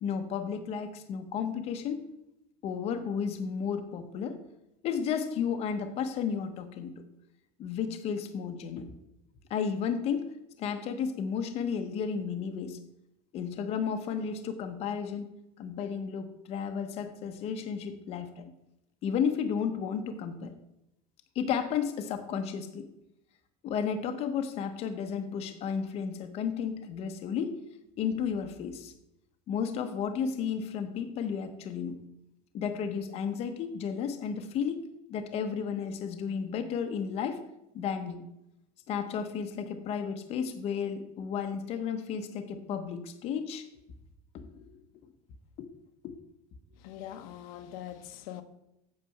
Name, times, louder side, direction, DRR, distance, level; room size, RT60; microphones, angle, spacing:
voice 1, 0.0-2.0 2.6-4.4 4.8-7.0 7.6-8.9 9.5-10.3 10.6-12.8 13.3-15.3 15.6-18.4 19.0-20.5 21.3-22.9 23.6-27.6 28.0-28.9 29.5-32.0 32.5-34.8 35.1-37.4 37.7-38.2 38.9-43.6 44.3-44.7 45.6-45.7 46.0-46.1, left 7 dB, 35° left, 0.8 m, -33 dB
voice 2, 46.8-48.4, left 11 dB, 70° left, 0.9 m, -42 dB
8.4 x 6.7 x 5.8 m
cardioid pair, 170°, 19 cm